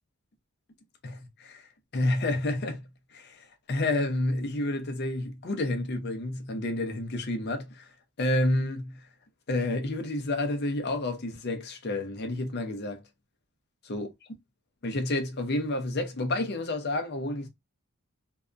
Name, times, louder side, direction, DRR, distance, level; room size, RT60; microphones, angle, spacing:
voice 1, 1.0-1.6 1.9-7.9 8.2-9.0 9.5-13.0 13.8-14.1 14.8-17.5, left 2 dB, 45° left, 0.6 m, -30 dB
2.7 x 2.3 x 2.2 m
head